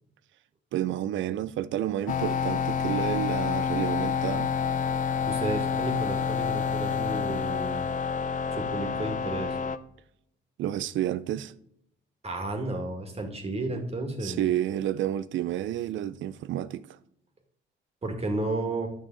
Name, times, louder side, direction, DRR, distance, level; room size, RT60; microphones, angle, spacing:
voice 1, 0.7-4.5 10.6-11.5 14.2-16.9, right 12 dB, 75° right, 0.5 m, -30 dB
sound 1, 2.1-9.8, left 6 dB, 40° left, 0.6 m, -28 dB
voice 2, 5.3-7.9 8.5-9.6 12.2-14.4 18.0-18.9, right 2 dB, 30° right, 2.0 m, -32 dB
9.2 x 6.1 x 3.9 m
cardioid pair, 90°, 20 cm